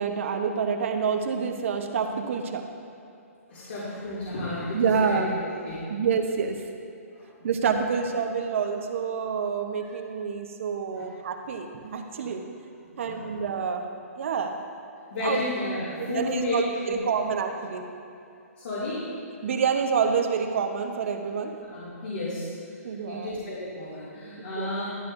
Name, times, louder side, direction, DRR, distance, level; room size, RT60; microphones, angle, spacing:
voice 1, 0.0-2.7 4.7-5.3 5.9-6.6 7.4-12.4 13.0-13.9 14.2-14.6 15.2-15.4 16.0-17.8 19.4-21.5 22.8-23.3 24.4-24.7, right 6 dB, 55° right, 4 dB, 1.0 m, -27 dB
voice 2, 3.5-5.9 7.2-7.5 10.9-11.1 12.1-12.3 13.0-13.4 15.1-17.0 18.6-19.1 21.7-22.5 22.8-24.9, left 2 dB, 55° left, -9 dB, 2.5 m, -32 dB
12.0 x 11.0 x 2.6 m, 2.6 s
hypercardioid pair, 155°, 8 cm